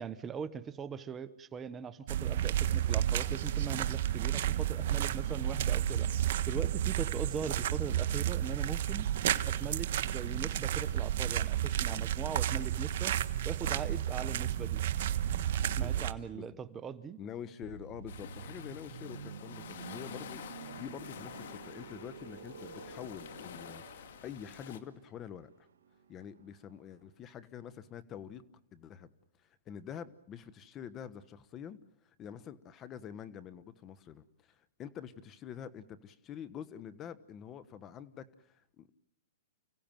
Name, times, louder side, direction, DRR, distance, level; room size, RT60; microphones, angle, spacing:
voice 1, 0.0-6.1 6.5-9.1 9.5-13.1 13.4-14.8 15.8-17.2, right 6 dB, 20° right, 13 dB, 1.1 m, -40 dB
sound 1, 2.1-16.1, right 11 dB, 60° right, 1.3 m, -31 dB
voice 2, 15.7-16.0 16.3-16.6 17.2-25.5 26.1-28.4 28.7-29.1 29.4-31.8 32.0-34.2 34.8-38.9, left 9 dB, 25° left, 13 dB, 1.3 m, -46 dB
sound 2, 17.6-27.3 27.5-27.8, right 7 dB, 85° right, 1.8 m, -50 dB
sound 3, 18.1-24.8, left 9 dB, 65° left, 2.1 m, -48 dB
29.5 x 17.0 x 9.2 m, 0.74 s
hypercardioid pair, 140°, 0 cm